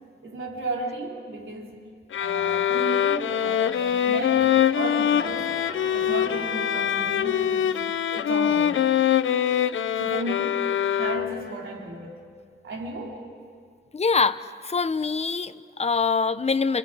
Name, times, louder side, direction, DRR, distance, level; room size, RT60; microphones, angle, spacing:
voice 1, 0.2-1.8 2.2-5.6 5.9-7.8 8.1-8.8 10.0-12.2 12.6-13.2, right 2 dB, 85° right, -1 dB, 3.6 m, -34 dB
sound 1, 2.1-11.6, left 9 dB, 90° left, 0.6 m, -24 dB
sound 2, 3.3-8.5, right 2 dB, 50° right, 4.9 m, -43 dB
voice 2, 13.9-16.8, left 4 dB, 35° left, 12 dB, 0.7 m, -24 dB
30.0 x 28.0 x 4.9 m, 2.2 s
wide cardioid pair, 110°, 20 cm